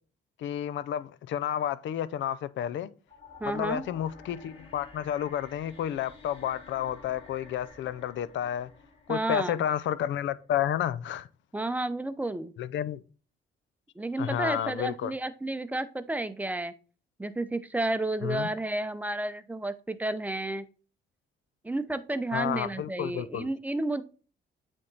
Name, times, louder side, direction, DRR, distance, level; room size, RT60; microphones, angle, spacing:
voice 1, 0.4-2.9 3.4-8.7 9.1-11.3 12.6-13.0 14.2-15.1 18.2-18.5 22.3-23.5, left 10 dB, 70° left, 0.6 m, -31 dB
sound 1, 3.1-10.2, left 3 dB, 30° left, 3.2 m, -51 dB
voice 2, 3.4-3.8 9.1-9.6 11.5-12.5 14.0-16.7 17.2-20.7 21.6-24.0, right 2 dB, 10° right, 0.7 m, -31 dB
8.4 x 3.6 x 4.0 m
cardioid pair, 90°, 20 cm